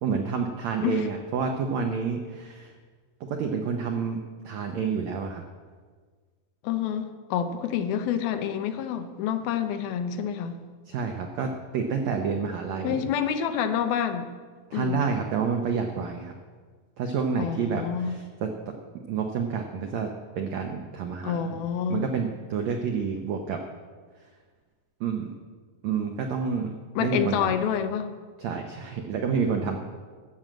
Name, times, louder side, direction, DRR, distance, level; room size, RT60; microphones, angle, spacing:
voice 1, 0.0-2.7 3.3-4.2 4.4-5.4 10.9-13.0 14.7-16.3 17.0-18.5 19.1-20.1 20.4-21.4 21.9-23.6 25.0-25.3 25.8-26.7 27.0-27.6 28.4-29.8, right 5 dB, 90° right, 4 dB, 1.5 m, -29 dB
voice 2, 6.6-10.6 12.8-14.3 14.7-15.0 17.4-18.2 21.2-22.1 27.0-28.1, left 8 dB, 80° left, 8 dB, 2.6 m, -28 dB
12.5 x 7.5 x 7.7 m, 1.5 s
omnidirectional pair, 4.4 m